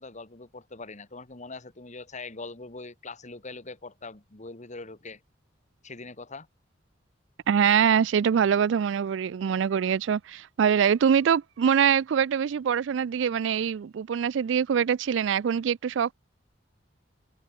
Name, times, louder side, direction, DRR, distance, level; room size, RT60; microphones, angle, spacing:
voice 1, 0.0-5.2 5.8-6.5, left 3 dB, 40° left, 2.2 m, -42 dB
voice 2, 7.5-16.1, right 7 dB, 70° right, 0.4 m, -24 dB
head